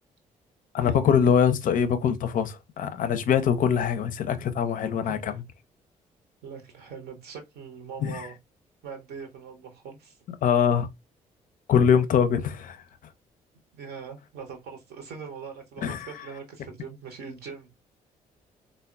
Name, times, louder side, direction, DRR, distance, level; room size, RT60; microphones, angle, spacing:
voice 1, 0.7-5.3 8.0-8.3 10.4-10.9 11.7-12.8 15.8-16.1, left 7 dB, 45° left, 0.5 m, -23 dB
voice 2, 4.9-5.4 6.4-8.4 8.8-10.2 13.7-17.7, right 6 dB, 55° right, 0.8 m, -41 dB
3.5 x 2.0 x 2.3 m
figure-of-eight pair, 45°, 19 cm